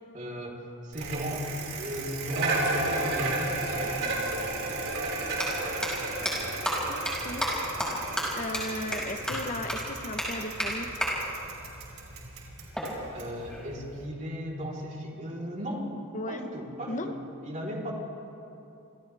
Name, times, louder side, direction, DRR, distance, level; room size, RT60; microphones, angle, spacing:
voice 1, 0.1-1.5 1.8-4.8 13.1-15.9 16.3-17.2 17.4-17.9, equal, 35° right, -3 dB, 3.9 m, -36 dB
Bicycle, 0.9-14.1, right 2 dB, 65° right, 5.2 m, -34 dB
sound 1, 5.4-5.5 5.8-5.9 6.2-6.3 6.6-6.7 7.1-7.2 7.4-7.5 7.8-7.9 8.2-8.3 8.5-8.6 8.9-9.0 9.3-9.4 9.7-9.8 10.2-10.3 10.6-10.7 11.0-11.1 12.7-13.8, equal, 5° left, 6.0 m, -31 dB
voice 2, 6.9-7.5 8.4-10.9 16.1-16.4 16.9-17.2, left 1 dB, 35° left, 7 dB, 1.0 m, -36 dB
28.0 x 27.5 x 3.5 m, 2.8 s
head